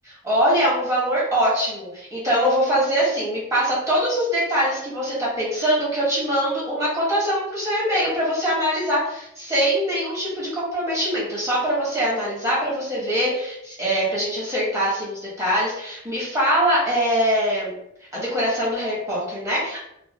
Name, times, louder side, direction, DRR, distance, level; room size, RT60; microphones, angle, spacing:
voice 1, 0.0-17.8 18.1-19.8, equal, 15° right, -7 dB, 1.2 m, -23 dB
3.1 x 2.7 x 2.3 m, 0.76 s
head